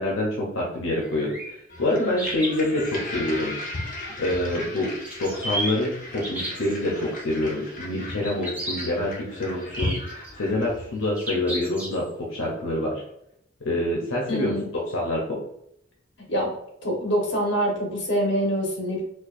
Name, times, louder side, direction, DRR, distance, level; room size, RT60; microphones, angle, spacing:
voice 1, 0.0-3.5 4.2-4.9 5.2-13.0 13.6-14.5 14.9-15.4, left 1 dB, 85° left, -3 dB, 0.7 m, -26 dB
sound 1, 1.0-1.5 2.2-2.9 5.0-5.7 6.2-6.7 8.2-8.9 9.7-10.3 11.2-12.1, right 1 dB, 10° right, 0.8 m, -32 dB
sound 2, 1.7-11.0, left 1 dB, 40° left, 0.8 m, -36 dB
voice 2, 14.3-14.7 16.3-16.5 16.8-19.0, equal, 60° left, -1 dB, 1.1 m, -25 dB
4.4 x 2.3 x 2.5 m, 0.78 s
head